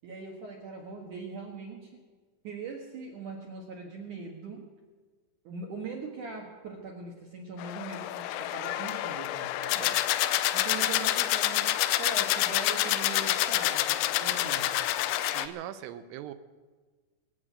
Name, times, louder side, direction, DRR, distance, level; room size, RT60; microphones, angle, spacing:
voice 1, 0.0-2.0 2.4-4.7 5.4-9.9 10.5-14.7, right 4 dB, 60° right, 0 dB, 2.1 m, -41 dB
sound 1, 7.6-15.5, left 14 dB, 80° left, 2.8 m, -28 dB
voice 2, 15.2-16.3, right 11 dB, 85° right, 11 dB, 3.4 m, -41 dB
25.5 x 8.6 x 6.1 m, 1.4 s
omnidirectional pair, 5.6 m